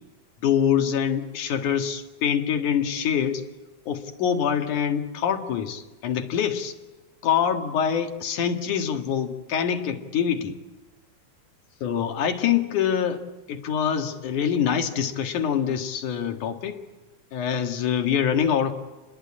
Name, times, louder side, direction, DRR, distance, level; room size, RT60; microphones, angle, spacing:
voice 1, 0.4-3.4 3.9-6.7 7.2-10.6 11.8-13.2 13.5-16.8 17.3-18.7, left 8 dB, 80° left, 5 dB, 3.3 m, -25 dB
29.5 x 21.0 x 8.7 m, 1.2 s
omnidirectional pair, 3.5 m